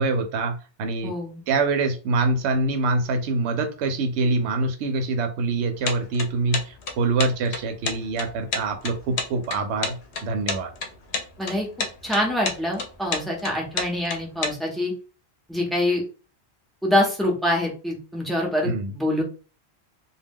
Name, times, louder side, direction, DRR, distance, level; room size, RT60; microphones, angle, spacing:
voice 1, 0.0-1.1 1.5-10.0 10.2-10.7 18.6-18.9, right 3 dB, 85° right, 6 dB, 0.9 m, -25 dB
voice 2, 1.0-1.4 11.4-11.7 12.0-14.9 15.5-16.0 16.8-19.2, left 1 dB, ahead, -2 dB, 0.6 m, -25 dB
sound 1, 5.8-14.5, left 4 dB, 80° left, 0.9 m, -29 dB
2.2 x 2.2 x 3.4 m, 0.35 s
omnidirectional pair, 1.1 m